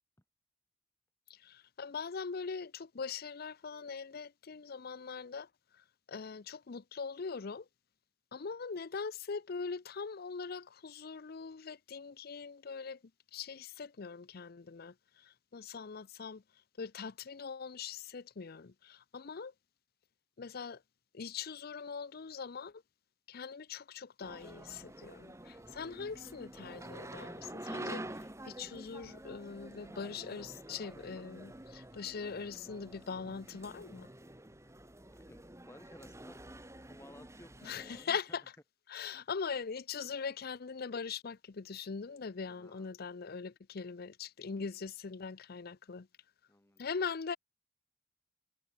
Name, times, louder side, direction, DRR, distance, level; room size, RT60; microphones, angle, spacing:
voice 1, 1.3-5.5 6.1-7.7 8.3-13.0 13.3-16.4 16.8-19.5 20.4-20.8 21.1-22.8 23.3-34.1 37.6-38.4 38.9-46.1 46.8-47.4, left 5 dB, 55° left, 0.6 m, -41 dB
sound 1, 24.2-38.1, right 1 dB, 15° right, 3.2 m, -48 dB
voice 2, 35.1-36.4 36.9-38.4 39.1-39.3 40.0-40.1 42.5-42.9 46.5-46.8, left 1 dB, 15° left, 5.9 m, -58 dB
head